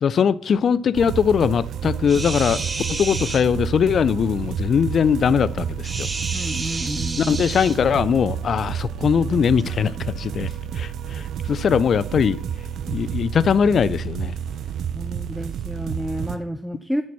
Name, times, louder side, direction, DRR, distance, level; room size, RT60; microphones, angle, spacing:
voice 1, 0.0-6.1 7.2-12.4 12.9-14.4, left 7 dB, 55° left, 0.4 m, -21 dB
sound 1, 0.9-16.4, right 8 dB, 70° right, 0.6 m, -30 dB
sound 2, 2.1-3.4 5.8-7.8 9.6-9.7, right 3 dB, 30° right, 1.4 m, -30 dB
voice 2, 6.3-7.5 14.9-17.0, equal, ahead, 0.5 m, -30 dB
11.0 x 4.2 x 6.0 m
cardioid pair, 90°, 0 cm